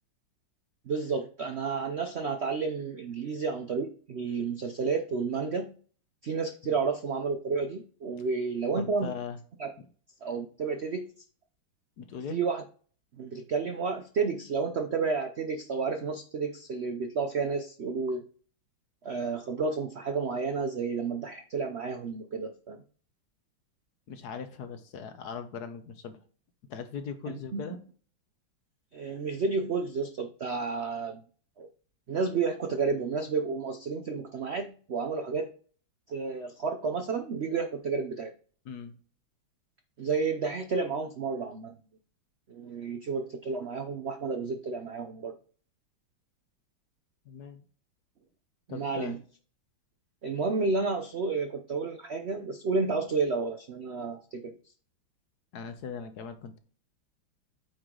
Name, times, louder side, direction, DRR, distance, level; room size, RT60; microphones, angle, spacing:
voice 1, 0.9-5.7 6.2-9.1 9.6-9.7 10.2-11.1 12.3-12.6 13.2-18.2 19.0-22.8 27.5-27.6 28.9-31.2 31.6-31.7 32.1-35.5 36.1-38.3 40.0-41.7 42.5-45.3 48.7-49.2 50.2-54.6, right 4 dB, 85° right, 6 dB, 0.5 m, -31 dB
voice 2, 8.8-9.4 12.0-12.4 24.1-26.2 26.7-27.8 38.6-39.0 47.2-47.6 48.7-49.2 55.5-56.6, left 6 dB, 60° left, 9 dB, 1.2 m, -39 dB
8.9 x 4.8 x 3.8 m, 0.42 s
omnidirectional pair, 2.2 m